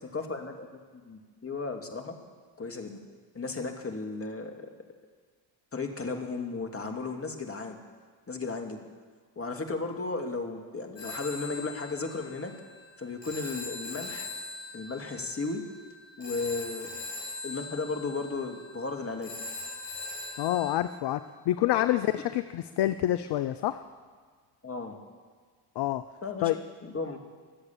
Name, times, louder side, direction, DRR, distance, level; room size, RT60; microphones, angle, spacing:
voice 1, 0.1-0.7 0.9-2.2 2.6-3.0 3.3-4.7 5.7-7.8 8.3-8.8 9.4-12.5 13.0-14.3 14.7-15.6 16.2-17.0 17.4-19.3 21.8-21.9 24.6-25.0 26.2-26.5 26.8-27.2, left 3 dB, 25° left, 4 dB, 2.5 m, -35 dB
Telephone, 11.0-20.7, left 2 dB, 85° left, 6.1 m, -41 dB
voice 2, 20.4-23.8 25.8-26.0 26.4-26.6, left 14 dB, 55° left, 12 dB, 0.7 m, -27 dB
22.5 x 8.0 x 7.3 m, 1.5 s
hypercardioid pair, 50°, 50 cm